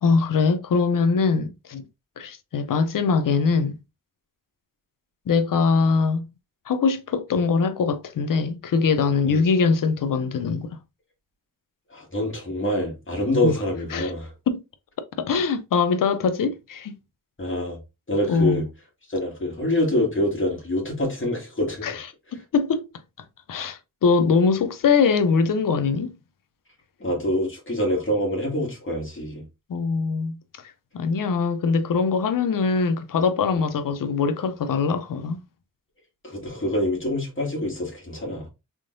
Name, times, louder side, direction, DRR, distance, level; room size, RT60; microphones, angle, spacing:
voice 1, 0.0-1.8 2.2-3.8 5.3-6.3 6.7-10.8 13.4-13.5 13.9-14.1 14.5-14.6 15.2-17.0 18.3-18.6 21.8-22.1 22.3-22.8 23.5-26.1 29.7-30.4 30.9-35.4, left 5 dB, 75° left, 0.6 m, -22 dB
voice 2, 11.9-14.3 17.4-17.8 18.1-18.6 19.1-21.9 27.0-29.4 36.2-38.5, left 1 dB, 35° left, 2.1 m, -25 dB
3.7 x 3.6 x 2.5 m
wide cardioid pair, 75°, 33 cm